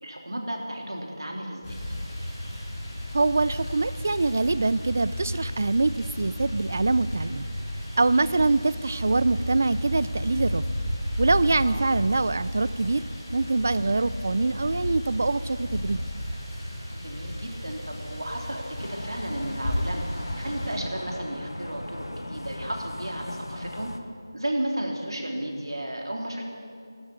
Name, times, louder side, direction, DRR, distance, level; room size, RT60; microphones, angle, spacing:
voice 1, 0.0-1.8 8.2-8.4 11.6-11.9 16.9-20.1 20.4-23.9 24.3-26.4, right 1 dB, 85° right, 0 dB, 3.4 m, -33 dB
sound 1, 1.6-20.8, equal, 10° left, 3.6 m, -33 dB
voice 2, 3.1-7.5 8.0-10.6 11.2-13.1 13.3-16.0, right 3 dB, 35° right, 17 dB, 0.3 m, -24 dB
sound 2, 18.8-24.0, left 1 dB, 85° left, 1.6 m, -37 dB
12.5 x 11.0 x 9.6 m, 2.3 s
figure-of-eight pair, 175°, 2 cm